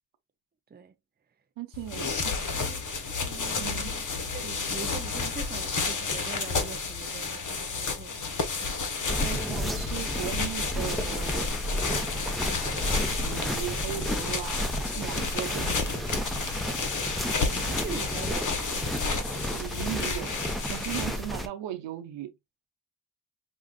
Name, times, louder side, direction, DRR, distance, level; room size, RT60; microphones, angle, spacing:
voice 1, 1.6-2.4 3.6-4.0 9.1-11.5 13.1-14.6 14.9-16.2 19.4-20.4 20.7-22.3, right 12 dB, 90° right, 0.7 m, -37 dB
sound 1, 1.7-21.3, left 4 dB, 45° left, 1.1 m, -31 dB
voice 2, 2.5-2.9 3.2-8.8 17.3-18.8, right 5 dB, 25° right, 0.7 m, -43 dB
sound 2, 9.1-21.5, equal, ahead, 1.0 m, -32 dB
5.2 x 2.4 x 2.4 m
supercardioid pair, 55°, 43 cm